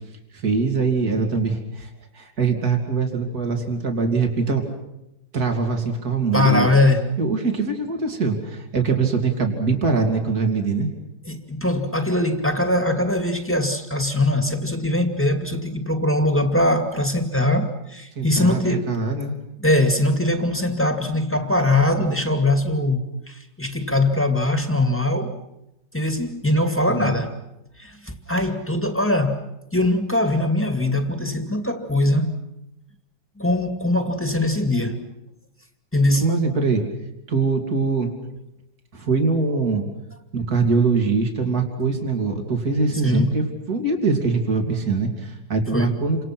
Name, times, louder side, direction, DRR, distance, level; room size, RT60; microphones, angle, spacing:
voice 1, 0.3-4.6 5.3-6.7 7.2-10.9 18.2-19.3 26.9-27.2 36.2-36.9 37.3-38.1 38.9-39.9 40.3-46.2, right 4 dB, 55° right, 3.5 m, -23 dB
voice 2, 6.3-7.1 11.3-18.9 19.6-25.4 25.9-27.4 27.8-32.4 33.4-35.0 35.9-36.3 43.0-43.4 45.7-45.9, left 1 dB, 5° left, 2.2 m, -21 dB
29.5 x 26.5 x 6.1 m
omnidirectional pair, 1.9 m